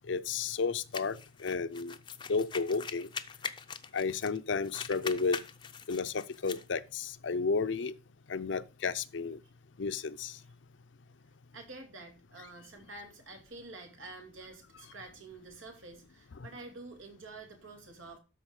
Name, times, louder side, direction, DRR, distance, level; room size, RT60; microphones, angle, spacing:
voice 1, 0.1-1.9 2.3-3.1 3.9-5.4 5.9-7.9 8.3-9.4 9.8-10.4 16.4-16.5, left 4 dB, 70° left, 0.5 m, -32 dB
sound 1, 0.9-4.4 4.6-6.6, left 6 dB, 25° left, 0.5 m, -42 dB
voice 2, 11.5-18.2, right 3 dB, 90° right, 2.5 m, -48 dB
12.5 x 4.5 x 4.8 m
head